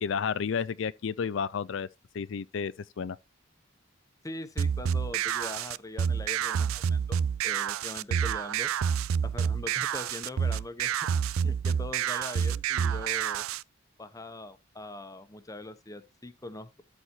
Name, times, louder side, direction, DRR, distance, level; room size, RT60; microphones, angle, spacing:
voice 1, 0.0-1.9 2.1-3.2, left 6 dB, 65° left, 0.4 m, -31 dB
voice 2, 4.2-8.7 9.2-11.0 11.4-13.4 14.0-16.8, left 2 dB, 15° left, 0.9 m, -42 dB
sound 1, 4.6-13.6, right 7 dB, 90° right, 0.4 m, -28 dB
12.5 x 4.3 x 4.4 m
head